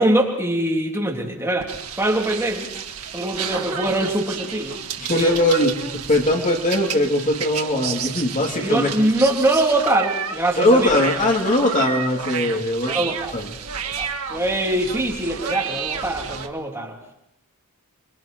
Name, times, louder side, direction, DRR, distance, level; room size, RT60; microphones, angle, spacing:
voice 1, 0.0-1.7 2.0-2.7 3.1-4.8 5.1-5.4 8.6-10.9 12.4-12.6 12.9-13.3 14.0-16.9, right 1 dB, 10° right, -1 dB, 3.3 m, -22 dB
sound 1, 1.6-16.5, right 7 dB, 80° right, 1.6 m, -31 dB
voice 2, 5.0-8.9 10.6-13.5, left 1 dB, 35° left, 1 dB, 2.7 m, -20 dB
28.0 x 23.0 x 4.6 m, 0.81 s
head